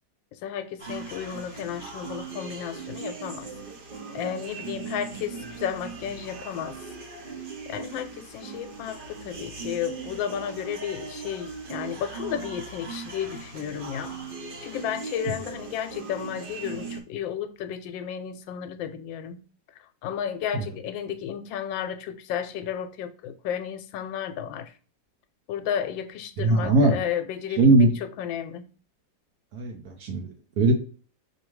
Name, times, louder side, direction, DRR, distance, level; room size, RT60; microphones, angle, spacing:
voice 1, 0.4-3.5 4.1-6.8 7.7-14.1 14.6-19.4 20.0-24.7 25.5-28.6, left 9 dB, 85° left, 1.3 m, -33 dB
sound 1, 0.8-17.0, right 5 dB, 50° right, 0.6 m, -39 dB
voice 2, 26.4-27.0 27.6-27.9 29.5-30.7, right 2 dB, 65° right, 1.0 m, -20 dB
4.7 x 2.7 x 3.1 m
omnidirectional pair, 2.0 m